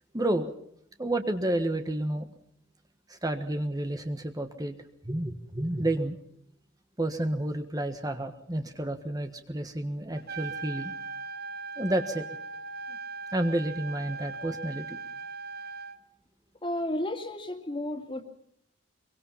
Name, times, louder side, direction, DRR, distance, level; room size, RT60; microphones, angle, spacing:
voice 1, 0.1-0.5 1.0-2.3 3.1-4.7 5.0-6.2 7.0-10.9 11.8-12.2 13.3-15.0, right 1 dB, 20° right, 7 dB, 1.4 m, -30 dB
Trumpet, 10.2-16.0, right 4 dB, 50° right, 1.3 m, -39 dB
voice 2, 16.6-18.2, left 1 dB, 25° left, 6 dB, 2.6 m, -32 dB
25.0 x 23.0 x 5.7 m, 0.72 s
head